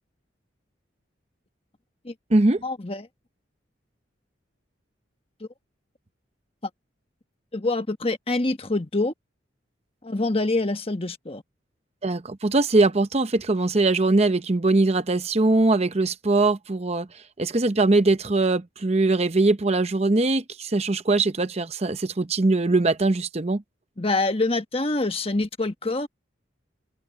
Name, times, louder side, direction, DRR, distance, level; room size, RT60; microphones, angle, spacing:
voice 1, 2.6-3.1 7.5-9.1 10.0-11.4 24.0-26.1, left 2 dB, 30° left, 1.4 m, -25 dB
voice 2, 12.0-17.1 17.4-23.6, right 2 dB, 35° right, 0.7 m, -21 dB
open air
head